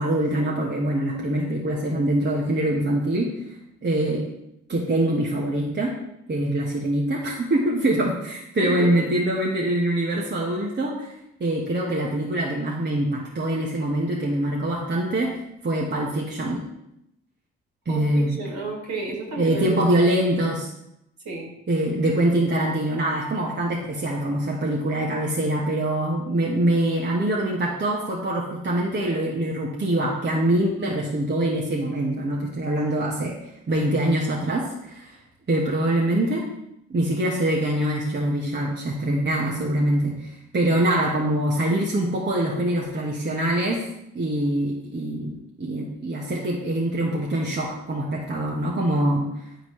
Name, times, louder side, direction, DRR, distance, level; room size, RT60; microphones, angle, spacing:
voice 1, 0.0-3.3 3.8-4.2 4.7-5.9 6.3-16.6 17.8-18.4 19.4-20.7 21.7-33.3 33.7-35.2 35.5-36.4 36.9-43.8 44.1-49.3, right 1 dB, 35° right, -3 dB, 1.4 m, -24 dB
voice 2, 8.6-9.0 17.9-19.8 21.2-21.5, right 3 dB, 65° right, -2 dB, 2.8 m, -31 dB
10.0 x 3.9 x 3.2 m, 0.82 s
hypercardioid pair, 50°, 31 cm